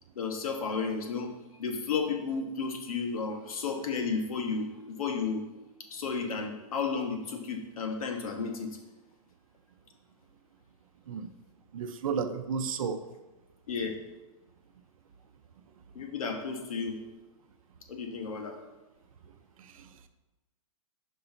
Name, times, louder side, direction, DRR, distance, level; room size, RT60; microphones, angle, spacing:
voice 1, 0.2-1.3 1.6-5.4 5.9-8.7 13.7-14.0 15.9-17.0 17.9-18.6, left 5 dB, 80° left, 4 dB, 1.2 m, -33 dB
voice 2, 11.7-13.0 19.6-19.9, right 6 dB, 70° right, 9 dB, 0.6 m, -33 dB
5.4 x 3.9 x 5.7 m, 1.1 s
hypercardioid pair, 160°, 18 cm